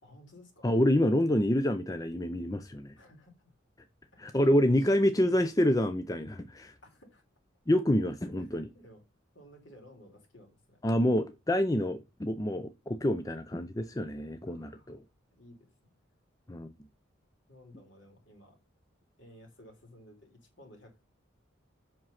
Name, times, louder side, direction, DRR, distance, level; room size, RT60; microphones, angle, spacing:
voice 1, 0.0-0.7 3.0-3.5 4.1-4.5 4.8-5.5 6.8-7.2 8.4-9.0 9.3-10.8 14.4-15.0 15.3-16.0 17.5-18.6 19.2-21.0, left 1 dB, 60° left, 3.7 m, -56 dB
voice 2, 0.6-3.0 4.2-6.7 7.7-8.7 10.8-15.0 16.5-16.7, left 1 dB, 15° left, 0.5 m, -27 dB
7.6 x 6.0 x 5.7 m
head